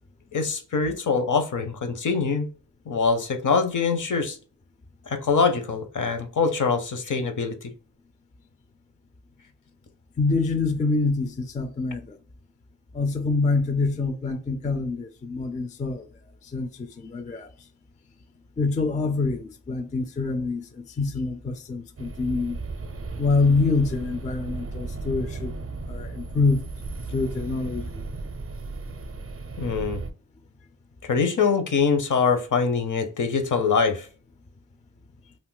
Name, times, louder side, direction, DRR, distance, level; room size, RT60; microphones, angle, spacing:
voice 1, 0.3-2.5 2.9-4.4 5.1-7.7 29.6-30.0 31.0-34.1, left 5 dB, 55° left, 0.6 m, -24 dB
voice 2, 10.2-12.2 12.9-16.1 16.4-17.5 18.6-22.6 23.2-25.6 25.9-26.6 27.1-28.0, left 3 dB, 20° left, 0.3 m, -26 dB
sound 1, 22.0-30.1, right 3 dB, 40° right, 0.5 m, -35 dB
2.5 x 2.1 x 3.7 m
cardioid pair, 65°, 36 cm